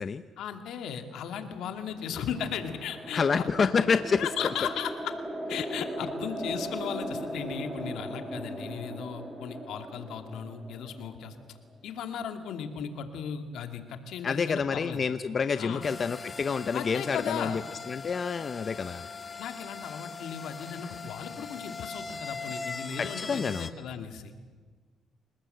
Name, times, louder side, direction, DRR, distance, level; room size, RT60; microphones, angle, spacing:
voice 1, 0.4-3.5 4.2-5.1 5.5-11.3 11.8-15.1 15.5-15.9 16.7-17.6 19.4-24.3, left 8 dB, 80° left, 7 dB, 2.4 m, -36 dB
sound 1, 1.5-11.9, right 1 dB, 15° right, 5.1 m, -39 dB
voice 2, 3.1-4.5 14.2-17.6 17.9-19.1 23.0-23.7, left 5 dB, 45° left, 11 dB, 0.8 m, -28 dB
sound 2, 15.8-23.7, left 4 dB, 25° left, 1.7 m, -41 dB
28.0 x 19.5 x 8.0 m, 1.5 s
cardioid pair, 90°, 0 cm